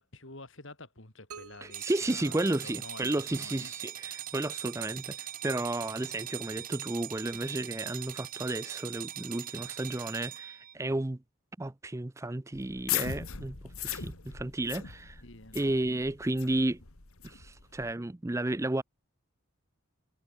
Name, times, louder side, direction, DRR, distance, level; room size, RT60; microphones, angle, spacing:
voice 1, 0.0-3.7 15.2-15.6, left 2 dB, 60° left, 3.4 m, -49 dB
sound 1, 1.3-3.2, right 5 dB, 90° right, 2.0 m, -51 dB
voice 2, 1.6-11.2 11.6-15.2 15.5-16.8 17.2-18.8, right 2 dB, 15° right, 0.4 m, -33 dB
sound 2, 1.7-10.7, right 12 dB, 40° right, 0.7 m, -41 dB
sound 3, 12.5-17.9, left 10 dB, 80° left, 2.2 m, -38 dB
head